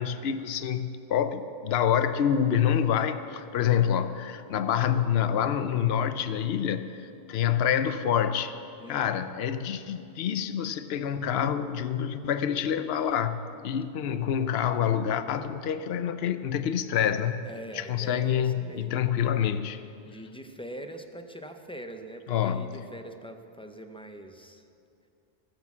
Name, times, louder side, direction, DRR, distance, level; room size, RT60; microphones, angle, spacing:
voice 1, 0.0-8.5 8.9-17.4 17.7-19.8 22.3-22.7, left 9 dB, 75° left, 11 dB, 0.9 m, -27 dB
voice 2, 8.8-9.1 17.4-19.3 20.1-24.7, right 1 dB, 5° left, 6 dB, 0.6 m, -43 dB
15.5 x 8.8 x 7.2 m, 2.6 s
omnidirectional pair, 1.1 m